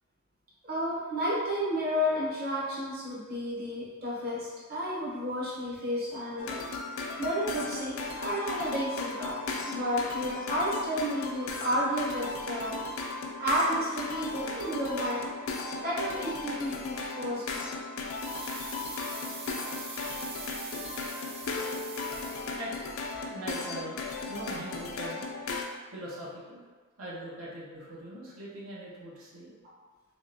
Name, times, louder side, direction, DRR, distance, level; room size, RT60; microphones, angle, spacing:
voice 1, 0.6-6.6 7.2-9.4 9.7-12.8 13.4-15.2 15.8-17.7 22.3-22.4, equal, 50° right, -6 dB, 0.8 m, -31 dB
sound 1, 6.4-25.6, left 3 dB, 80° left, 0.4 m, -36 dB
sound 2, 18.1-22.9 23.1-23.2, right 3 dB, 30° right, 0.5 m, -43 dB
voice 2, 23.3-25.2 25.9-26.6 27.0-29.5, equal, 85° right, -6 dB, 0.8 m, -41 dB
3.5 x 3.1 x 2.5 m, 1.4 s
head